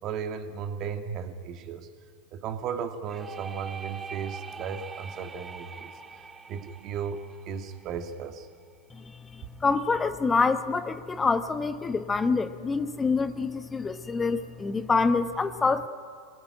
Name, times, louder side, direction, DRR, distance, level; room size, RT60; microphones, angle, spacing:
voice 1, 0.0-1.9 2.3-6.0 6.5-8.5, right 7 dB, 40° right, 7 dB, 2.1 m, -35 dB
sound 1, 3.1-8.7, right 5 dB, 20° right, 1.7 m, -43 dB
voice 2, 9.3-15.9, left 4 dB, 15° left, 11 dB, 1.1 m, -26 dB
26.0 x 19.5 x 9.8 m, 2.1 s
figure-of-eight pair, 90°, 0 cm